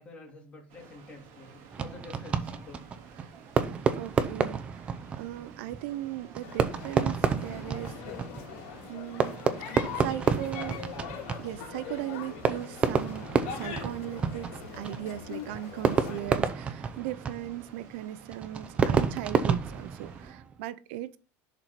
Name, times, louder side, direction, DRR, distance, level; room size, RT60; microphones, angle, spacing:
voice 1, 0.0-2.8, left 3 dB, 20° left, 2.7 m, -48 dB
Water, 0.7-20.3, right 7 dB, 50° right, 1.9 m, -54 dB
Fireworks, 1.7-20.5, right 6 dB, 20° right, 0.6 m, -30 dB
voice 2, 3.2-4.8 5.2-7.9 8.9-9.4 9.7-10.8 11.4-21.2, right 14 dB, 70° right, 0.6 m, -38 dB
sound 1, 6.4-16.3, left 7 dB, 75° left, 2.9 m, -42 dB
11.0 x 4.6 x 4.0 m
cardioid pair, 175°, 7 cm